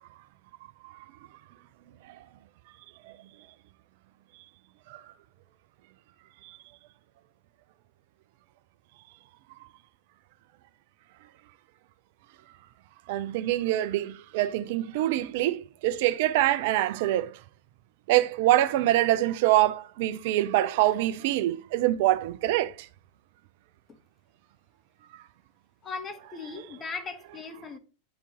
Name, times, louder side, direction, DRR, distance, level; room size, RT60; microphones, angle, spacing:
voice 1, 13.1-17.4 18.1-22.9, right 15 dB, 50° right, 0.4 m, -25 dB
voice 2, 25.8-27.8, left 4 dB, 20° left, 1.2 m, -38 dB
8.6 x 3.7 x 3.7 m
figure-of-eight pair, 90°, 0 cm